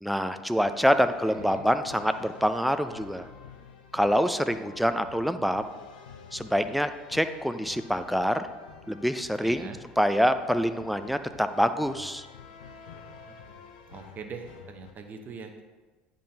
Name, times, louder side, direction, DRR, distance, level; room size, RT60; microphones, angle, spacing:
voice 1, 0.0-3.3 3.9-5.6 6.3-8.5 8.9-12.3, equal, ahead, 10 dB, 0.4 m, -26 dB
sound 1, 0.6-14.9, left 6 dB, 80° left, 0.6 m, -49 dB
voice 2, 1.0-1.6 9.4-9.8 13.9-15.6, right 5 dB, 40° right, 5 dB, 0.9 m, -42 dB
10.5 x 3.7 x 2.8 m, 1.3 s
hypercardioid pair, 70°, 5 cm